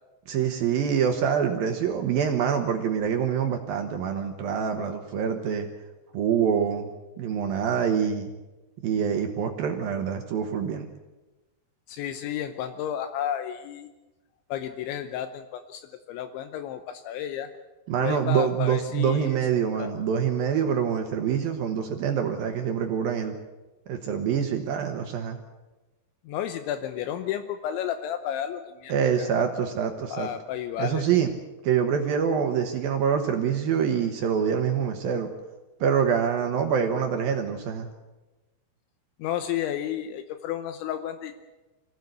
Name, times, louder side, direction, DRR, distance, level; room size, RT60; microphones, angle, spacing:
voice 1, 0.3-5.7 6.1-6.9 7.2-8.3 8.8-10.9 17.9-23.4 23.9-25.4 28.9-30.3 30.8-31.3 31.6-35.3 35.8-37.9, right 7 dB, 65° right, 4 dB, 2.6 m, -25 dB
voice 2, 11.9-13.9 14.5-17.5 18.0-19.4 19.8-19.9 26.3-28.9 29.3-29.4 30.1-31.0 39.2-41.3, left 10 dB, 80° left, 8 dB, 3.2 m, -32 dB
25.0 x 16.5 x 8.2 m, 1.1 s
omnidirectional pair, 5.4 m